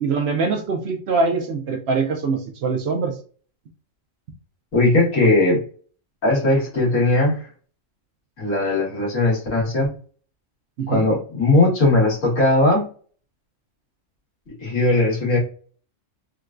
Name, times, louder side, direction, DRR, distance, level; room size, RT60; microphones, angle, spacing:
voice 1, 0.0-3.1 10.8-11.1, right 4 dB, 65° right, 3 dB, 0.7 m, -23 dB
voice 2, 4.7-5.6 6.2-7.5 8.4-9.9 10.9-12.9 14.6-15.4, left 2 dB, 80° left, -4 dB, 1.8 m, -18 dB
3.7 x 2.2 x 2.4 m, 0.41 s
omnidirectional pair, 1.3 m